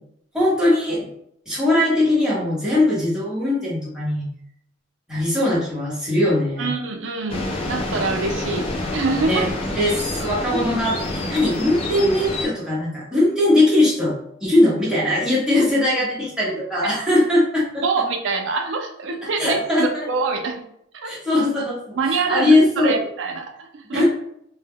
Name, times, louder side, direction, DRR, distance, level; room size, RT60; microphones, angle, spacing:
voice 1, 0.3-1.1 1.5-4.2 5.1-6.7 9.2-9.5 9.7-14.1 14.4-17.8 19.4-20.1 21.0-23.0 23.9-24.1, left 1 dB, 5° right, -8 dB, 0.9 m, -20 dB
voice 2, 6.6-9.5 10.5-10.6 16.8-17.0 17.8-20.7 20.9-21.1 22.0-24.0, right 4 dB, 65° right, 5 dB, 0.4 m, -25 dB
sound 1, 7.3-12.4, left 2 dB, 30° left, 0.4 m, -27 dB
2.1 x 2.0 x 3.5 m, 0.72 s
head